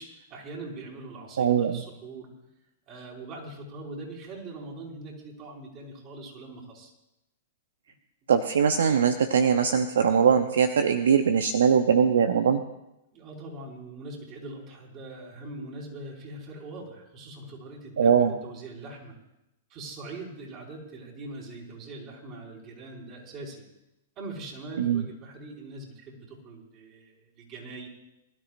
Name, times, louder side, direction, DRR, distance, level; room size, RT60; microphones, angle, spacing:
voice 1, 0.0-2.3 2.9-6.9 13.1-19.1 19.7-23.6 24.2-27.9, right 2 dB, 40° right, -2 dB, 5.6 m, -42 dB
voice 2, 1.4-1.8 8.3-12.6 18.0-18.3 24.8-25.0, right 7 dB, 75° right, 8 dB, 0.8 m, -21 dB
24.0 x 13.0 x 2.6 m, 0.90 s
hypercardioid pair, 110°, 0 cm